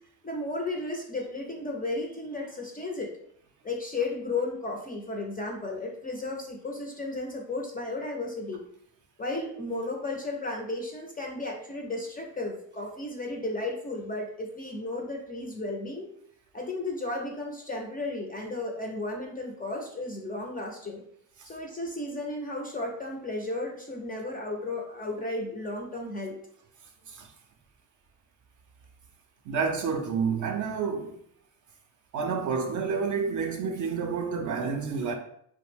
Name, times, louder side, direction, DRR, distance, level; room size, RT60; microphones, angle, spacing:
voice 1, 0.2-3.1 3.6-8.6 9.2-16.1 16.5-21.0 21.4-26.4, left 2 dB, 20° left, 0.4 m, -34 dB
voice 2, 29.5-31.2 32.1-35.1, right 5 dB, 40° right, 0.4 m, -29 dB
2.4 x 2.1 x 3.3 m
hypercardioid pair, 70°, 49 cm